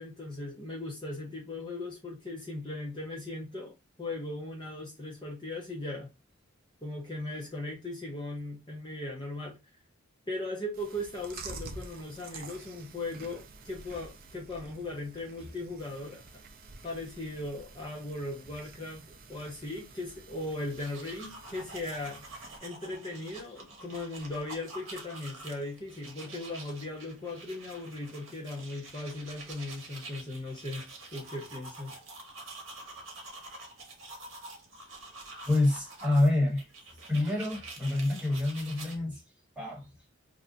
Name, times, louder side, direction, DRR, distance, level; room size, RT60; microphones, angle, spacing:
voice 1, 0.0-6.1 6.8-9.6 10.3-16.2 16.8-22.2 22.6-32.0, left 2 dB, 25° left, 0.6 m, -38 dB
Chewing mastication, 10.7-22.6, right 3 dB, 45° right, 0.5 m, -49 dB
sound 1, 20.6-39.0, right 2 dB, 70° right, 0.9 m, -47 dB
voice 2, 35.5-36.7 37.1-39.2 39.6-39.9, left 2 dB, 5° right, 1.1 m, -27 dB
2.5 x 2.2 x 3.8 m
head